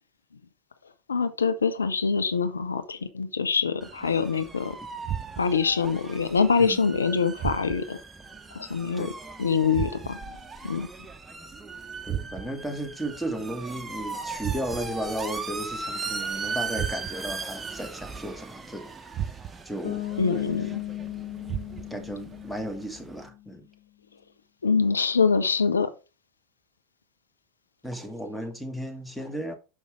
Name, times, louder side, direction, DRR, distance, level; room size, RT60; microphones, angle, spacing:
voice 1, 1.1-4.8 5.4-8.0 8.6-9.1 9.4-10.2 10.6-10.9 20.2-20.8 24.6-25.9, left 5 dB, 90° left, 0.6 m, -24 dB
sound 1, 3.8-23.3, right 4 dB, 20° right, 0.9 m, -39 dB
sound 2, 5.0-5.7 7.4-8.0 9.7-10.4 12.1-12.7 14.4-15.0 16.7-17.4 19.1-19.8 21.5-22.1, right 9 dB, 45° right, 0.6 m, -34 dB
voice 2, 12.1-18.9 19.6-20.0 21.9-23.6 27.8-29.5, right 1 dB, ahead, 1.4 m, -34 dB
Bass guitar, 19.8-23.6, left 13 dB, 60° left, 1.7 m, -37 dB
6.3 x 5.3 x 3.5 m
hypercardioid pair, 85°, 0 cm